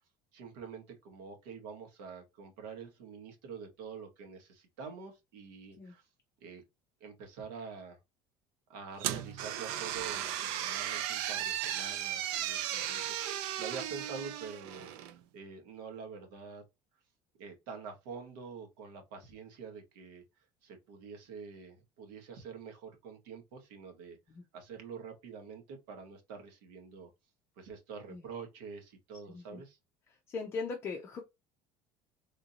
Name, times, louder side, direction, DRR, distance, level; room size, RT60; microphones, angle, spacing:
voice 1, 0.3-6.0 6.4-6.6 7.0-8.0 8.7-14.9 15.3-16.6 17.4-20.2 20.6-24.2 24.5-27.1 27.6-29.8, right 5 dB, 85° right, 1.5 m, -46 dB
sound 1, 9.0-15.2, right 11 dB, 60° right, 0.5 m, -36 dB
voice 2, 29.3-29.6 30.3-31.2, left 4 dB, 25° left, 0.5 m, -39 dB
3.6 x 2.6 x 2.7 m
cardioid pair, 175°, 11 cm